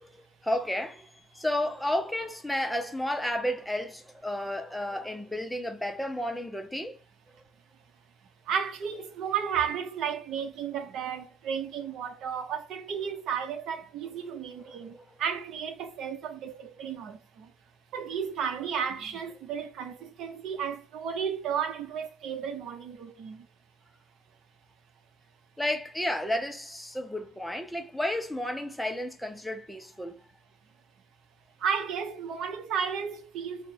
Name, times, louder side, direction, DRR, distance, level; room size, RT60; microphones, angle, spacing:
voice 1, 0.0-7.0 14.7-14.8 25.6-30.2, left 1 dB, 5° left, 0.6 m, -32 dB
voice 2, 8.4-17.5 17.9-23.5 31.6-33.7, right 7 dB, 65° right, 0.8 m, -33 dB
3.3 x 2.1 x 4.1 m
cardioid pair, 135°, 0 cm